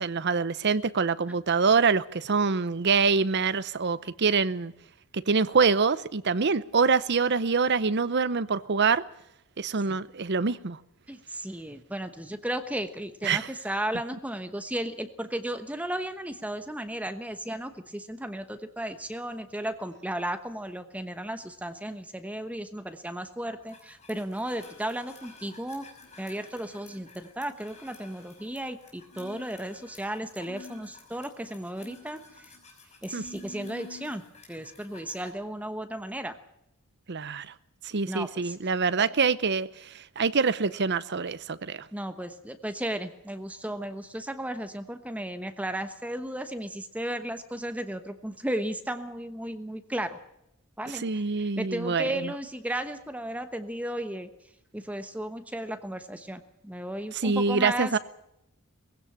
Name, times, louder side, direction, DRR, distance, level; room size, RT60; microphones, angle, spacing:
voice 1, 0.0-4.7 5.3-9.0 9.6-10.8 13.2-13.5 33.1-33.2 37.1-37.5 37.8-41.9 50.9-52.3 57.2-58.0, right 5 dB, 50° right, 0.7 m, -25 dB
voice 2, 11.1-25.9 26.2-32.5 33.0-36.4 38.1-38.6 39.0-39.1 41.9-50.2 50.8-54.3 54.7-58.0, right 1 dB, 5° right, 1.1 m, -35 dB
sound 1, 23.7-35.3, left 3 dB, 30° left, 5.9 m, -49 dB
20.0 x 16.5 x 8.8 m
head